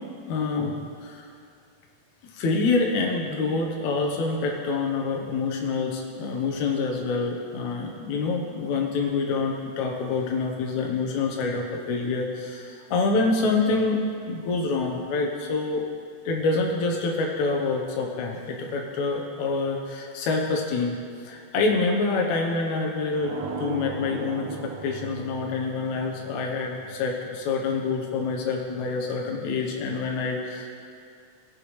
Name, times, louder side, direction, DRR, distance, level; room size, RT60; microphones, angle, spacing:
voice 1, 0.3-1.3 2.4-15.9 16.3-21.0 21.2-30.7, left 3 dB, 70° left, 0 dB, 2.1 m, -26 dB
sound 1, 23.1-27.9, right 4 dB, 75° right, 2.3 m, -38 dB
20.5 x 7.0 x 3.1 m, 2.5 s
omnidirectional pair, 4.0 m